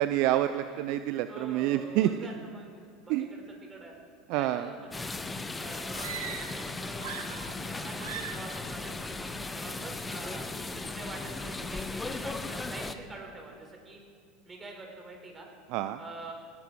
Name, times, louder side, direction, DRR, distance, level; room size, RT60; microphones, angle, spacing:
voice 1, 0.0-2.1 3.1-3.3 4.3-4.7 15.7-16.0, right 13 dB, 60° right, 11 dB, 0.5 m, -27 dB
voice 2, 1.3-3.4 3.7-3.9 4.3-7.1 7.7-14.0 14.4-15.5 16.0-16.3, right 2 dB, 25° right, 1 dB, 4.2 m, -46 dB
sound 1, 4.9-12.9, left 3 dB, 15° left, 0.9 m, -37 dB
sound 2, 5.9-6.7 7.0-7.7 8.0-8.5, right 7 dB, 75° right, 1.3 m, -40 dB
18.0 x 11.5 x 4.7 m, 2.1 s
hypercardioid pair, 80°, 0 cm